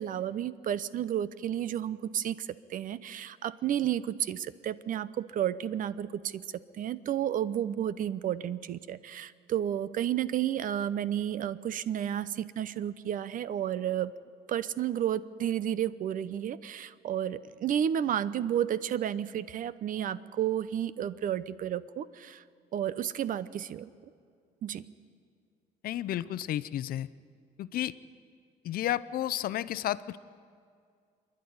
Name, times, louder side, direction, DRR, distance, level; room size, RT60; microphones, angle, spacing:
voice 1, 0.0-6.4 6.7-14.1 14.5-22.4 22.7-23.9 24.6-24.9, right 10 dB, 55° right, 17 dB, 0.7 m, -32 dB
voice 2, 25.8-27.1 27.6-27.9 28.6-30.2, left 12 dB, 60° left, 16 dB, 0.6 m, -32 dB
26.5 x 11.0 x 9.5 m, 2.2 s
cardioid pair, 110°, 17 cm